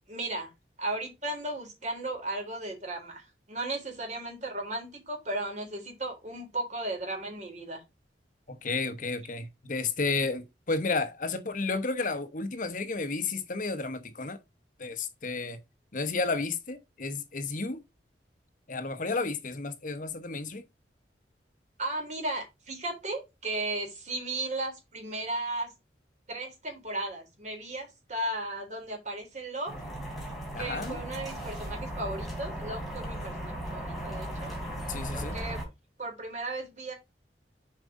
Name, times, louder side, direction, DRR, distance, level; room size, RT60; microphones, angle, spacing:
voice 1, 0.1-0.5 0.8-7.8 21.8-25.7 26.3-29.7 30.5-34.5 35.1-35.6 36.0-36.9, right 2 dB, 40° right, 3.7 m, -35 dB
voice 2, 8.5-14.4 14.8-15.6 15.9-17.8 18.7-20.6 30.5-31.0 34.9-35.3, left 3 dB, 50° left, 0.9 m, -32 dB
sound 1, 29.7-35.6, right 1 dB, ahead, 3.4 m, -37 dB
7.5 x 5.1 x 3.7 m
head